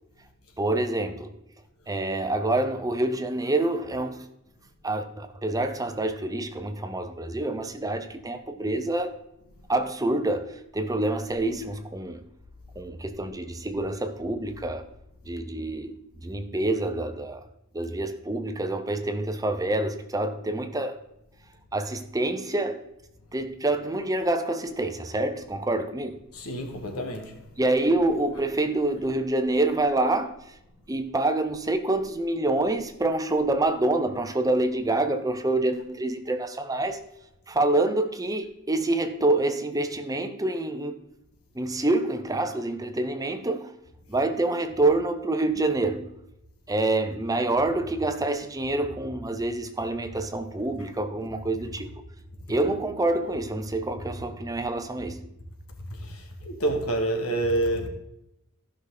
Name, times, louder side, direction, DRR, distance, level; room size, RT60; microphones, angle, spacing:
voice 1, 0.6-1.4 1.9-4.3 4.8-9.1 9.7-12.3 12.7-14.9 15.2-17.5 17.7-21.0 21.7-22.8 23.3-26.2 27.6-30.6 30.9-37.0 37.5-41.0 41.5-43.7 44.1-46.1 46.7-51.9 52.5-55.3, right 2 dB, 15° right, 0.7 m, -27 dB
voice 2, 26.3-27.5 55.9-57.9, right 1 dB, 85° left, 1.9 m, -28 dB
14.5 x 5.9 x 3.9 m
head